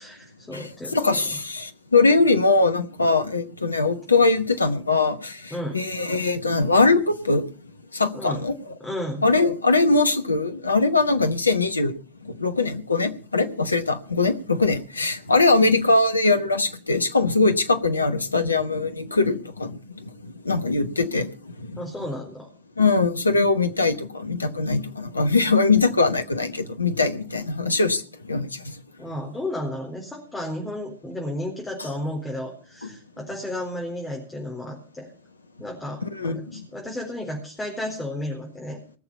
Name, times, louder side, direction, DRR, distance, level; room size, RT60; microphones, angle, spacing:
voice 1, 0.0-1.4 5.5-5.8 8.1-8.4 8.8-9.2 21.8-22.5 29.0-35.1 35.6-38.8, left 1 dB, 15° left, 1 dB, 4.2 m, -33 dB
voice 2, 0.5-7.4 7.9-8.5 9.2-11.9 12.3-19.8 20.4-21.3 22.8-28.0 28.3-28.6 36.0-36.4, left 3 dB, 85° left, 10 dB, 1.1 m, -21 dB
19.0 x 7.0 x 7.0 m, 0.41 s
figure-of-eight pair, 80°, 0 cm